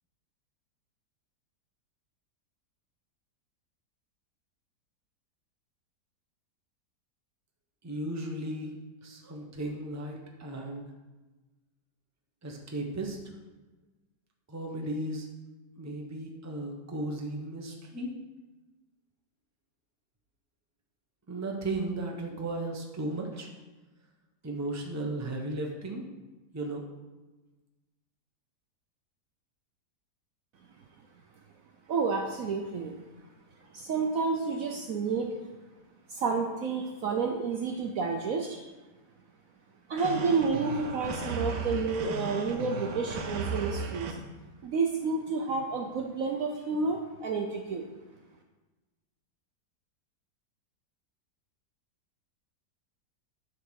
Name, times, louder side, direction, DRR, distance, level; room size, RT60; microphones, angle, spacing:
voice 1, 7.8-10.9 12.4-13.2 14.5-15.3 15.8-18.1 21.3-23.5 24.4-26.1 26.5-26.8, right 2 dB, 10° right, 1 dB, 0.8 m, -35 dB
voice 2, 31.9-33.0 33.6-35.3 36.1-38.7 39.9-44.2 44.6-47.9, right 4 dB, 65° right, 3 dB, 1.0 m, -30 dB
sound 1, 40.0-44.1, right 4 dB, 80° right, 1.5 m, -35 dB
10.0 x 3.8 x 6.3 m, 1.2 s
omnidirectional pair, 1.8 m